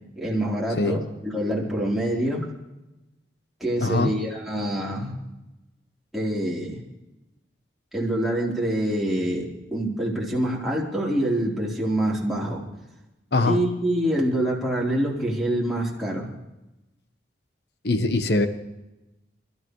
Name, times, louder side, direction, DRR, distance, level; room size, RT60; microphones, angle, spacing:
voice 1, 0.2-2.5 3.6-5.2 6.1-6.8 7.9-12.6 13.5-16.3, right 1 dB, ahead, -6 dB, 3.6 m, -26 dB
voice 2, 3.8-4.1 13.3-13.6 17.8-18.5, left 2 dB, 60° left, 9 dB, 1.1 m, -22 dB
28.5 x 14.0 x 3.2 m, 0.99 s
head